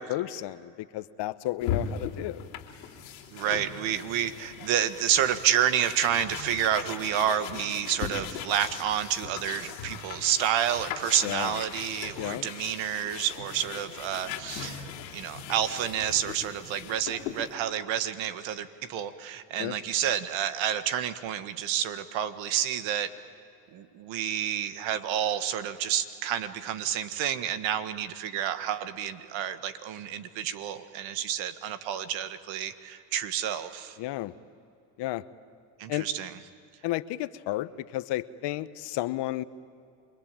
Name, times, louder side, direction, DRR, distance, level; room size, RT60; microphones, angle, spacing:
voice 1, 0.0-2.4 11.2-11.6 12.2-12.5 19.6-19.7 34.0-34.3 35.0-35.2 35.9-36.1 36.8-39.4, left 15 dB, 55° left, 15 dB, 1.0 m, -32 dB
sound 1, 1.6-17.5, left 8 dB, 90° left, 2.9 m, -39 dB
voice 2, 3.3-14.8 15.1-23.1 23.7-34.0 35.8-36.4, right 10 dB, 65° right, 11 dB, 1.7 m, -29 dB
28.5 x 22.0 x 9.0 m, 2.6 s
hypercardioid pair, 80°, 49 cm